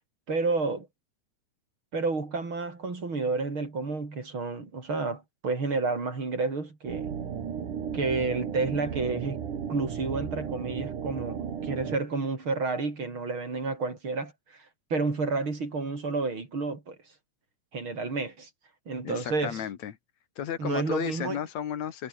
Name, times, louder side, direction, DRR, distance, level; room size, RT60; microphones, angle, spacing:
voice 1, 0.3-0.9 1.9-7.1 7.9-9.4 9.7-14.3 14.9-17.0 17.7-18.5 18.9-19.6 20.6-21.4, right 3 dB, 35° right, 5.2 m, -30 dB
sound 1, 6.9-12.0, right 7 dB, 65° right, 4.2 m, -34 dB
voice 2, 19.0-19.9 20.4-22.1, left 9 dB, 60° left, 2.7 m, -33 dB
omnidirectional pair, 3.9 m